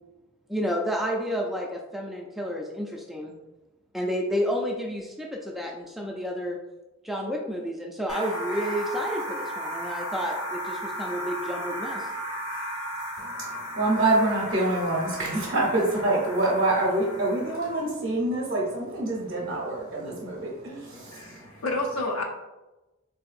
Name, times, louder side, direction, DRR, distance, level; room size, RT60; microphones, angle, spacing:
voice 1, 0.5-3.3 3.9-6.6 7.0-12.1, equal, ahead, 0 dB, 0.3 m, -30 dB
sound 1, 8.1-17.8, equal, 65° left, 1.1 m, -35 dB
voice 2, 13.2-21.6, right 2 dB, 50° right, -4 dB, 0.6 m, -26 dB
voice 3, 21.1-22.2, left 2 dB, 80° left, 1 dB, 0.6 m, -30 dB
3.8 x 2.6 x 2.4 m, 1.1 s
head